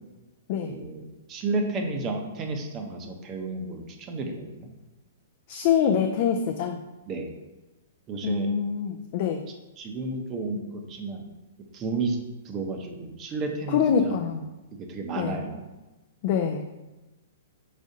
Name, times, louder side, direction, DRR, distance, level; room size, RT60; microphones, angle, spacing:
voice 1, 0.7-1.0 1.3-4.7 7.1-7.3 8.1-8.5 9.8-11.2 11.7-12.2 12.4-14.3 14.9-15.6, right 3 dB, 30° right, 3 dB, 0.7 m, -32 dB
voice 2, 5.5-6.8 8.2-9.4 13.7-14.4 15.2-15.4 16.2-16.6, left 7 dB, 50° left, 3 dB, 0.4 m, -25 dB
5.0 x 3.6 x 2.7 m, 1.1 s
hypercardioid pair, 140°, 0 cm